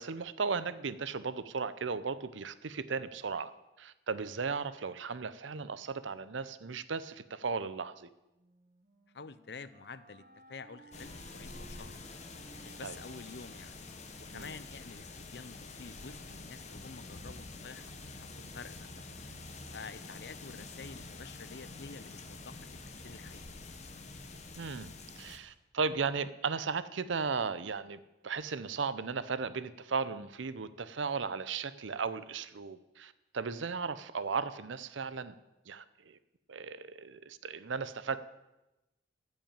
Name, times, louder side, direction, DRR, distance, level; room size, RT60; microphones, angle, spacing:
voice 1, 0.0-3.5 3.8-8.1 12.8-13.0 14.3-14.5 24.6-35.3 35.7-36.2 36.5-38.2, right 5 dB, 85° right, 14 dB, 0.7 m, -36 dB
Wind instrument woodwind instrument, 8.4-15.2, right 1 dB, 45° right, 1.1 m, -60 dB
voice 2, 9.1-10.2 10.5-12.1 12.6-13.7 14.2-18.9 19.7-22.6 22.9-23.5, left 4 dB, 60° left, 15 dB, 0.6 m, -49 dB
sound 1, 10.9-25.4, left 3 dB, 35° left, 1.0 m, -47 dB
13.5 x 5.6 x 8.9 m, 0.99 s
head